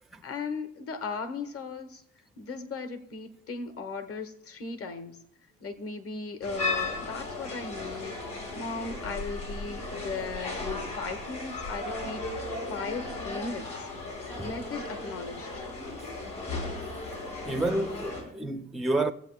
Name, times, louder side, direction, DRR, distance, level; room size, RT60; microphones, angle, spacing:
voice 1, 0.2-2.0 2.4-5.2 5.6-8.2 8.5-12.4 12.7-13.9 14.3-15.7, left 4 dB, 50° left, 1.2 m, -37 dB
sound 1, 6.4-18.2, left 2 dB, 80° left, 4.1 m, -36 dB
voice 2, 17.5-19.1, right 2 dB, ahead, 0.5 m, -29 dB
23.5 x 7.9 x 2.3 m
cardioid pair, 90°, 30 cm